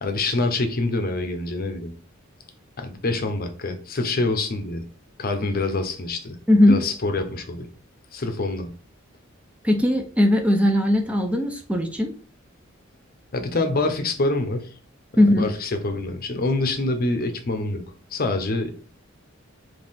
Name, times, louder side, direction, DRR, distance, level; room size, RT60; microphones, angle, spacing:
voice 1, 0.0-1.9 2.8-4.8 5.2-6.4 6.7-7.7 8.1-8.7 13.3-14.7 15.1-17.8 18.1-18.7, left 2 dB, 45° left, 7 dB, 0.7 m, -26 dB
voice 2, 9.6-12.1 15.2-15.4, left 1 dB, 5° right, 3 dB, 0.5 m, -18 dB
3.7 x 2.8 x 4.1 m, 0.42 s
head